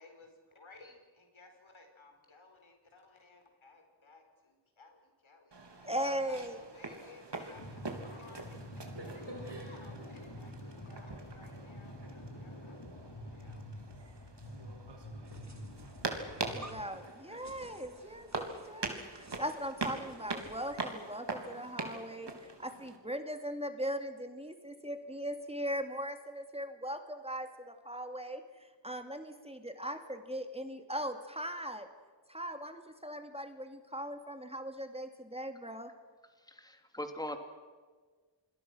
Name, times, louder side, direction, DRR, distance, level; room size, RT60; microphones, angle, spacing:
voice 1, 0.0-8.5 9.0-13.7, left 3 dB, 80° left, 4 dB, 4.7 m, -58 dB
sound 1, 5.5-23.0, right 3 dB, 60° right, 3.5 m, -43 dB
voice 2, 5.8-6.6 16.5-31.9 32.3-35.9, equal, 15° right, 6 dB, 2.5 m, -39 dB
sound 2, 7.5-16.9, left 1 dB, 65° left, 4.2 m, -47 dB
sound 3, 15.2-21.1, right 2 dB, 35° right, 2.6 m, -56 dB
voice 3, 36.5-37.4, left 1 dB, 10° left, 6 dB, 2.8 m, -40 dB
28.0 x 21.0 x 6.3 m, 1.5 s
wide cardioid pair, 55°, 47 cm